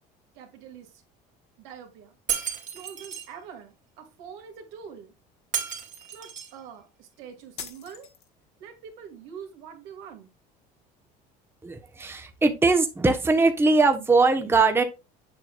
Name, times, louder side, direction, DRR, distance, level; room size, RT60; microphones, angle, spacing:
voice 1, 0.3-0.9 1.6-2.2 2.7-5.1 6.1-8.1 8.6-10.3, right 7 dB, 80° right, 2.0 m, -44 dB
Shatter, 2.3-3.3 5.5-6.6, right 8 dB, 40° right, 2.1 m, -32 dB
sound 1, 7.6-8.6, left 7 dB, 60° left, 1.5 m, -42 dB
voice 2, 11.6-14.8, right 3 dB, 10° right, 0.9 m, -21 dB
7.5 x 6.2 x 2.3 m
supercardioid pair, 110°, 19 cm